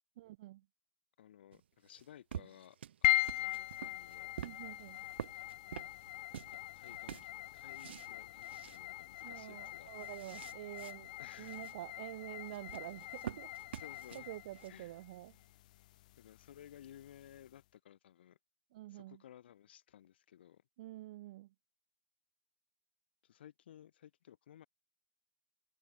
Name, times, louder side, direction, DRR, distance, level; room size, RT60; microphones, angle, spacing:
voice 1, 0.2-0.6 4.4-5.0 9.2-13.5 14.1-15.4 18.7-19.2 20.8-21.5, right 16 dB, 45° right, 1.6 m, -48 dB
voice 2, 1.2-4.3 6.5-9.9 11.2-11.6 13.7-14.3 14.7-15.0 16.2-18.4 18.9-20.6 23.2-24.7, left 11 dB, 65° left, 1.6 m, -57 dB
sound 1, 1.5-6.6 6.8-8.1 8.4-8.8 9.2-9.3 9.6-10.9 11.3-11.8 12.5-14.7, right 10 dB, 70° right, 2.2 m, -48 dB
sound 2, 3.0-17.5, left 16 dB, 45° left, 0.5 m, -40 dB
hypercardioid pair, 170°, 6 cm